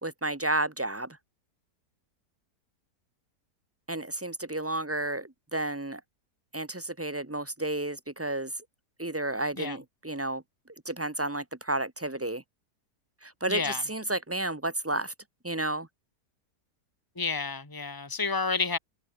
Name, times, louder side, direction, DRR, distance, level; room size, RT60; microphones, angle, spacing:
voice 1, 0.0-1.2 3.9-6.0 6.5-8.5 9.0-10.4 10.9-12.4 13.2-15.1 15.4-15.9, right 2 dB, 10° right, 0.8 m, -31 dB
voice 2, 13.5-13.8 17.2-18.8, left 4 dB, 10° left, 2.2 m, -30 dB
omnidirectional pair, 1.8 m